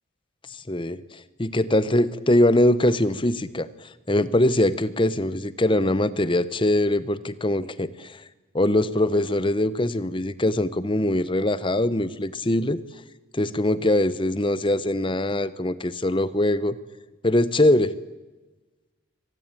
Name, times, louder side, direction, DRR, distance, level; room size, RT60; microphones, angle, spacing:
voice 1, 0.5-8.2 8.5-12.8 13.3-16.8 17.2-18.0, left 1 dB, 25° left, 16 dB, 0.9 m, -22 dB
25.0 x 18.5 x 9.0 m, 1.2 s
head